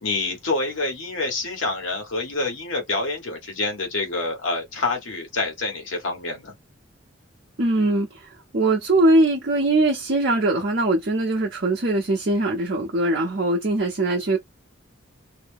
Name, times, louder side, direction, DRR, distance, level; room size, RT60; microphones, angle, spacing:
voice 1, 0.0-6.5, left 3 dB, 80° left, 1.2 m, -27 dB
voice 2, 7.6-8.2 8.5-14.4, right 2 dB, 55° right, 0.7 m, -21 dB
2.7 x 2.1 x 3.4 m
head